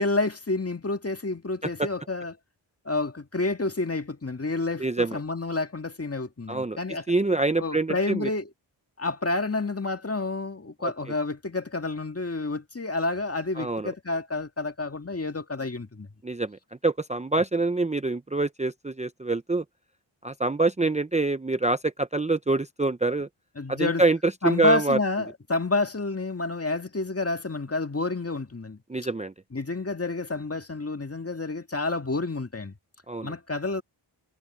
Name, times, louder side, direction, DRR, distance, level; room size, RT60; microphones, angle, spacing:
voice 1, 0.0-2.3 2.9-7.0 7.6-8.5 9.0-16.1 23.6-24.0 24.4-28.8 29.5-32.7 33.2-33.8, left 3 dB, 30° left, 1.9 m, -29 dB
voice 2, 4.8-5.2 6.5-6.8 7.1-8.3 10.8-11.1 13.6-13.9 16.2-19.6 20.2-23.3 23.7-25.0 28.9-29.3 33.1-33.3, right 2 dB, 15° right, 0.7 m, -26 dB
cardioid pair, 50°, 48 cm